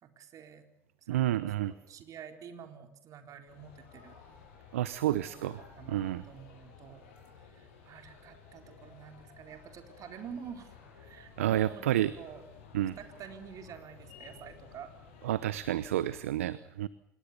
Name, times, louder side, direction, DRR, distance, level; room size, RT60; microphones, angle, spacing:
voice 1, 0.0-0.6 1.0-4.2 5.1-7.1 7.5-12.4 13.0-14.9, right 7 dB, 50° right, 6 dB, 4.2 m, -49 dB
voice 2, 1.1-1.7 4.7-5.6 5.9-6.2 11.4-12.1 12.7-13.0 15.2-16.9, right 13 dB, 80° right, 17 dB, 0.9 m, -30 dB
sound 1, 3.5-16.2, left 6 dB, 75° left, 7.1 m, -54 dB
26.5 x 22.5 x 6.9 m, 0.81 s
hypercardioid pair, 65°, 7 cm